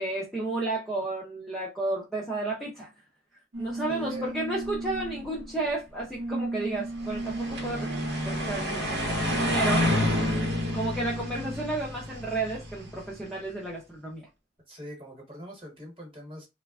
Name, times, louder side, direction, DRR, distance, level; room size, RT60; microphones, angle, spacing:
voice 1, 0.0-2.9 3.6-7.9 8.2-9.0 9.5-9.9 10.7-14.3, right 2 dB, ahead, 0.5 m, -32 dB
sound 1, 3.5-11.7, right 2 dB, 85° right, 0.6 m, -36 dB
voice 2, 3.9-4.3 14.7-16.5, right 1 dB, 25° right, 1.1 m, -43 dB
sound 2, 7.0-13.2, left 1 dB, 55° right, 0.8 m, -29 dB
3.2 x 2.1 x 2.3 m
head